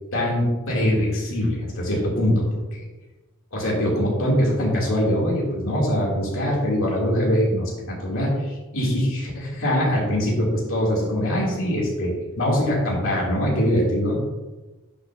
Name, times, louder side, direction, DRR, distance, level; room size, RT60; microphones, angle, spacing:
voice 1, 0.1-2.4 2.7-2.8 3.5-14.2, equal, 65° left, -4 dB, 2.7 m, -23 dB
10.0 x 6.4 x 2.7 m, 1.2 s
head